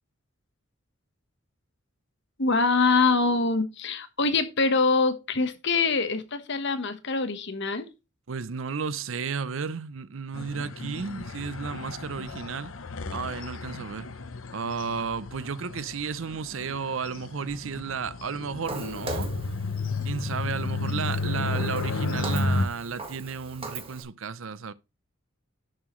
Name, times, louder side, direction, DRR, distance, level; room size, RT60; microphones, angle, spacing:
voice 1, 2.4-7.9, left 4 dB, 60° left, 1.3 m, -24 dB
voice 2, 8.3-12.7 13.1-14.1 14.5-19.3 20.0-24.7, right 5 dB, 70° right, 0.6 m, -33 dB
sound 1, 10.3-22.7, left 3 dB, 80° left, 0.9 m, -32 dB
Walk footsteps, 18.6-24.0, right 3 dB, 30° right, 1.6 m, -40 dB
11.0 x 7.5 x 3.1 m
head